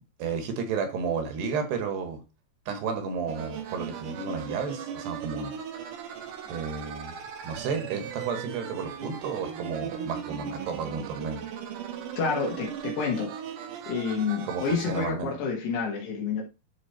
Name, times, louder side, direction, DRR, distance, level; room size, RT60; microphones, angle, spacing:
voice 1, 0.2-2.2 2.7-5.5 6.5-7.2 7.4-11.4 14.4-15.3, right 5 dB, 80° right, 3.9 m, -32 dB
sound 1, 3.3-15.1, right 8 dB, 65° right, 2.4 m, -38 dB
voice 2, 12.2-13.3 13.9-16.4, left 5 dB, 80° left, 3.8 m, -29 dB
11.0 x 4.6 x 4.4 m
omnidirectional pair, 4.7 m